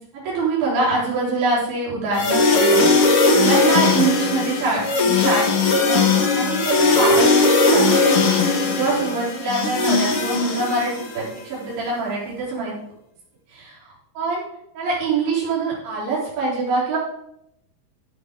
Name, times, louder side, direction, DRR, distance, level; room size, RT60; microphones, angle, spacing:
voice 1, 0.1-12.8 13.5-14.4 14.8-17.0, right 3 dB, 85° right, -7 dB, 6.1 m, -25 dB
sound 1, 2.1-11.3, left 3 dB, 70° left, 1.3 m, -18 dB
14.0 x 7.8 x 3.7 m, 0.79 s
omnidirectional pair, 5.1 m